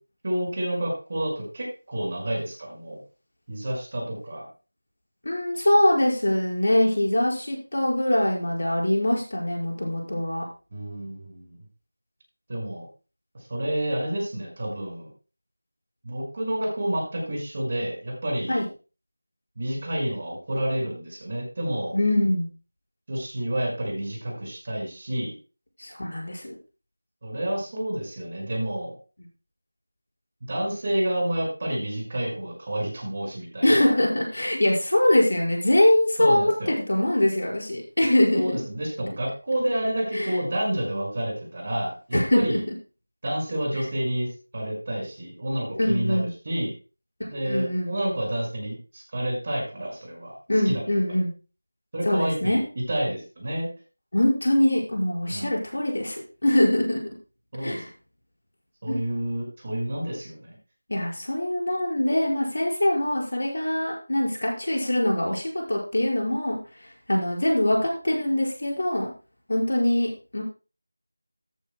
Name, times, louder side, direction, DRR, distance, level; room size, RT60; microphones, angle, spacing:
voice 1, 0.2-3.0 3.5-4.5 10.7-11.6 12.5-12.9 13.5-15.1 16.0-18.6 19.6-21.9 23.1-25.4 27.2-29.0 30.5-33.9 36.2-36.7 38.3-42.6 43.2-44.3 44.5-46.7 47.3-50.4 50.7-50.8 51.9-53.7 55.3-55.5 57.5-57.8 58.8-60.6, right 1 dB, 35° right, -1 dB, 5.3 m, -29 dB
voice 2, 5.2-10.4 18.5-18.7 21.9-22.5 25.8-26.6 33.6-38.6 40.1-40.4 42.1-42.6 45.8-46.3 47.3-48.0 50.5-51.3 52.1-52.6 54.1-57.0 57.6-57.9 58.9-59.0 60.9-69.1 69.5-70.4, left 1 dB, 60° left, -1 dB, 5.2 m, -23 dB
14.0 x 12.0 x 2.2 m, 0.34 s
figure-of-eight pair, 170°, 0 cm